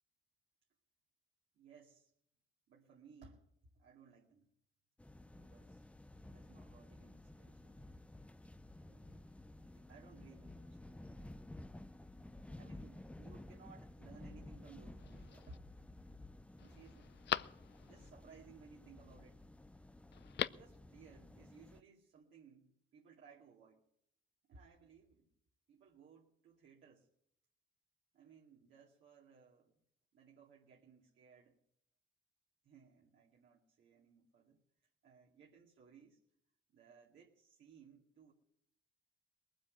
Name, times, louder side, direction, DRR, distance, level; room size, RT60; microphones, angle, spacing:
voice 1, 1.5-2.1 2.7-4.5 5.3-5.9 6.3-7.9 8.8-9.2 9.6-11.3 12.5-15.7 16.6-17.1 17.9-19.4 20.5-23.8 24.5-25.3 25.7-27.1 28.1-29.7 30.1-31.6 32.6-34.6 35.0-36.2 36.7-38.3, right 5 dB, 70° right, -2 dB, 2.3 m, -62 dB
sound 1, 5.0-21.8, left 1 dB, 5° left, 0.6 m, -54 dB
Telephone, 15.0-15.6 16.1-16.2 16.6-18.1 20.1-20.8 21.0-21.1, left 11 dB, 60° left, 0.5 m, -41 dB
20.0 x 7.7 x 8.4 m, 0.72 s
cardioid pair, 90°, 20 cm